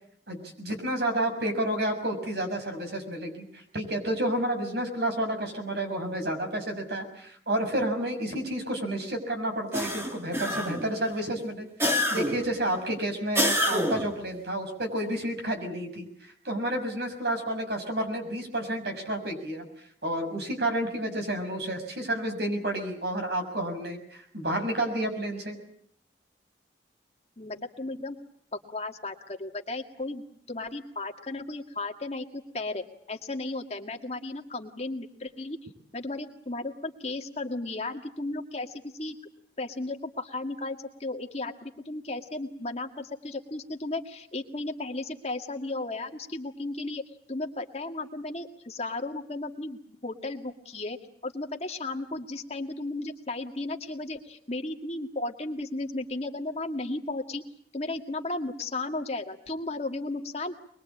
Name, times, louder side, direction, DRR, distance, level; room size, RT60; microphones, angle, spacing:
voice 1, 0.3-11.7 12.1-19.6 20.0-25.6, right 1 dB, 65° right, 4 dB, 6.5 m, -30 dB
sound 1, 9.7-10.9 11.8-12.5 13.4-14.2, equal, 15° right, 2.4 m, -27 dB
voice 2, 27.4-28.2 28.7-35.6 35.9-39.2 39.6-47.0 47.3-51.0 51.2-57.4 57.7-60.6, left 2 dB, 35° left, 4 dB, 2.1 m, -35 dB
24.0 x 22.0 x 8.6 m, 0.65 s
head